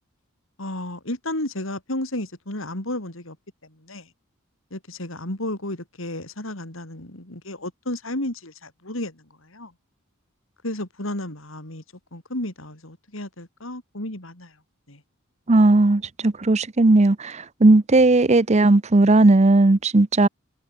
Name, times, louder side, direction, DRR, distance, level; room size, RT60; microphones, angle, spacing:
voice 1, 0.6-3.4 3.6-4.1 4.7-9.7 10.6-11.8 12.1-14.6 14.9-15.0, left 1 dB, 65° left, 4.5 m, -32 dB
voice 2, 15.5-17.3 17.6-20.3, right 2 dB, 30° right, 0.7 m, -16 dB
head